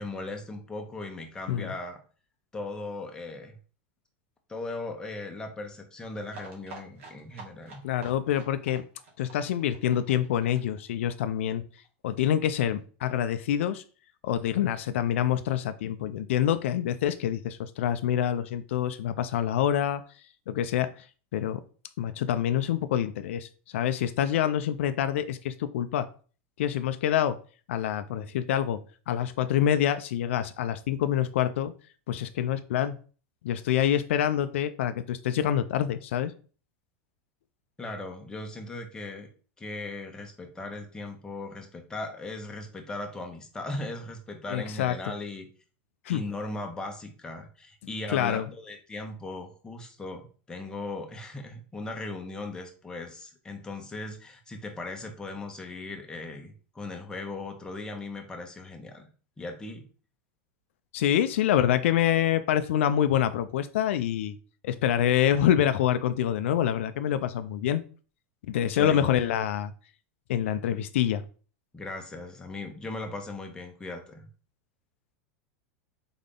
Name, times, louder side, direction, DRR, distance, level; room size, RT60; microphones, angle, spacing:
voice 1, 0.0-2.0 2.5-3.5 4.5-7.8 37.8-39.3 39.6-45.5 46.1-59.1 59.4-59.9 68.7-69.1 71.7-74.3, left 2 dB, 10° left, 3 dB, 1.0 m, -38 dB
sound 1, 6.3-11.9 12.1-12.2 12.5-12.6 12.8-12.9, right 3 dB, 80° right, 1.8 m, -48 dB
voice 2, 7.8-8.8 9.2-11.6 12.0-13.8 14.2-20.0 20.5-21.1 21.3-21.6 22.0-26.1 26.6-27.4 27.7-28.8 29.1-31.7 32.1-33.0 33.4-36.3 44.5-45.0 46.1-46.2 48.1-48.5 60.9-64.4 64.6-67.8 68.5-69.7 70.3-71.2, left 10 dB, 80° left, 11 dB, 0.4 m, -26 dB
3.9 x 3.7 x 3.7 m, 0.39 s
supercardioid pair, 130°, 7 cm